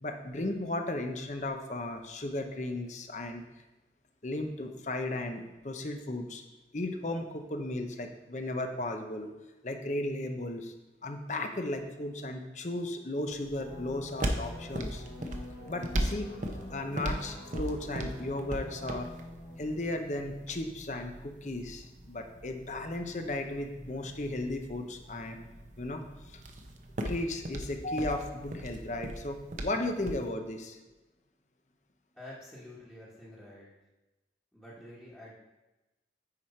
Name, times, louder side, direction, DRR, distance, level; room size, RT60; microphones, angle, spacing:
voice 1, 0.0-3.4 4.2-6.4 6.7-9.3 9.6-10.7 11.0-15.0 15.7-16.3 16.7-19.1 19.6-25.4 25.8-26.4 27.1-30.8, left 1 dB, 40° left, 5 dB, 0.8 m, -35 dB
sound 1, 13.3-30.3, right 1 dB, 45° right, 0.7 m, -39 dB
sound 2, 13.5-20.9, left 1 dB, 65° left, 1.1 m, -47 dB
voice 2, 32.1-33.7 34.5-35.4, left 1 dB, 10° left, -9 dB, 1.4 m, -48 dB
9.6 x 4.9 x 4.4 m, 1.1 s
head